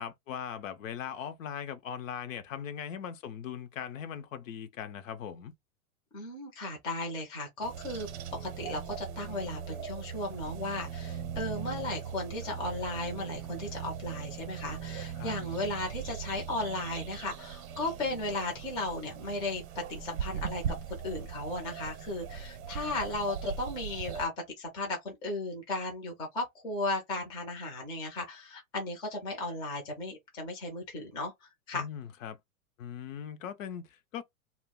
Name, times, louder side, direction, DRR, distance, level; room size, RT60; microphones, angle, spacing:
voice 1, 0.0-5.5 15.2-15.3 31.7-32.4 32.8-34.2, left 8 dB, 65° left, 0.6 m, -39 dB
voice 2, 6.1-8.1 8.4-19.6 19.9-20.6 21.0-24.3 24.6-31.3 31.7-31.9, left 2 dB, 10° left, 0.4 m, -35 dB
sound 1, 7.6-24.3, right 8 dB, 55° right, 0.7 m, -40 dB
2.2 x 2.0 x 3.5 m
hypercardioid pair, 145°, 43 cm